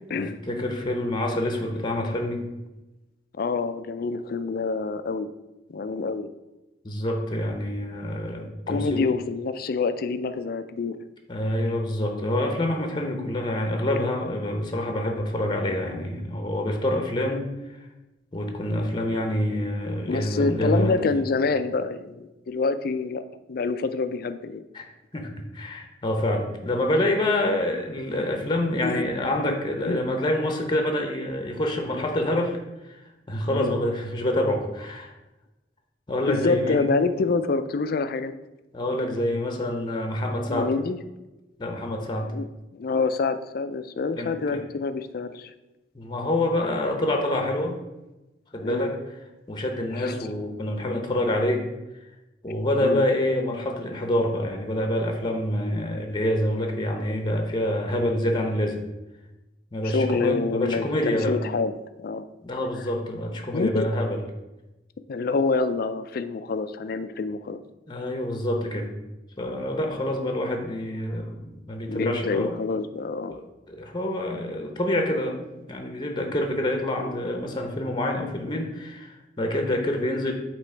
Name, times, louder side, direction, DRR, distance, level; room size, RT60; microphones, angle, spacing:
voice 1, 0.1-2.5 6.8-9.1 11.3-17.5 18.3-21.0 24.7-24.8 25.1-32.6 32.8-33.0 33.3-35.1 36.1-36.9 38.7-40.7 41.6-42.3 44.2-44.6 45.9-47.7 48.5-48.9 49.5-51.6 52.4-58.8 59.7-61.4 62.4-64.2 67.9-68.9 69.4-72.5 73.3-73.4 73.7-80.3, left 1 dB, 25° left, 3 dB, 0.8 m, -27 dB
voice 2, 3.4-5.3 5.7-6.3 8.7-11.0 20.1-23.2 23.5-24.6 28.8-29.0 29.4-29.6 29.8-30.0 33.5-33.7 36.3-38.3 40.5-41.0 42.2-45.5 48.6-48.9 49.9-50.2 52.8-53.1 59.8-61.7 62.0-62.3 63.5-63.9 65.1-67.6 71.9-73.4, left 4 dB, 55° left, 11 dB, 0.4 m, -27 dB
8.3 x 3.1 x 4.4 m, 1.0 s
head